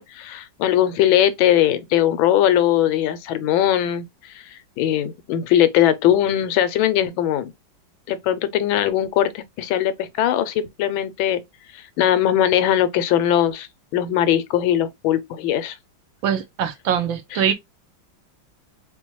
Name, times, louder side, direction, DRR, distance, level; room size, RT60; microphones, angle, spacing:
voice 1, 0.0-4.0 4.3-7.5 8.1-11.4 11.7-13.7 13.9-15.8 17.3-17.5, left 11 dB, 85° left, 1.4 m, -20 dB
voice 2, 16.2-17.5, right 8 dB, 80° right, 1.5 m, -22 dB
4.3 x 2.2 x 2.9 m
omnidirectional pair, 2.1 m